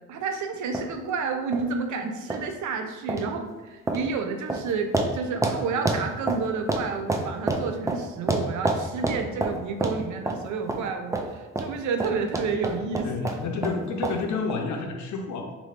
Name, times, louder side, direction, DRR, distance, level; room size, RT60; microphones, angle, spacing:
voice 1, 0.1-13.4, right 5 dB, 75° right, 5 dB, 0.5 m, -30 dB
sound 1, 0.7-0.8 1.5-1.6 2.3-2.4 3.1-3.3 3.9-4.0 4.5-4.6 4.9-5.1 5.4-5.6 5.9-6.8 7.1-8.0 8.3-9.6 9.8-10.0 10.3-10.4 10.7-10.8 11.1-11.3 11.6-11.7 12.0-13.8 14.0-14.2 14.5-14.6, right 2 dB, 10° right, 0.3 m, -26 dB
voice 2, 13.0-15.5, left 4 dB, 70° left, 3 dB, 0.6 m, -30 dB
3.0 x 2.6 x 3.2 m, 1.2 s
cardioid pair, 90°, 30 cm